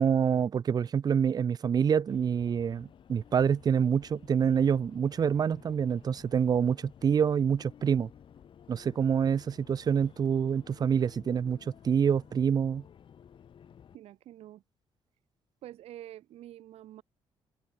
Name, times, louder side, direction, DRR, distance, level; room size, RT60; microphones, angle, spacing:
voice 1, 0.0-8.1 8.7-11.6 11.8-12.8, right 7 dB, 40° right, 0.5 m, -26 dB
sound 1, 2.1-14.0, left 8 dB, 55° left, 2.2 m, -54 dB
voice 2, 13.9-14.6 15.6-17.0, right 13 dB, 80° right, 0.9 m, -47 dB
cardioid pair, 115°, 10 cm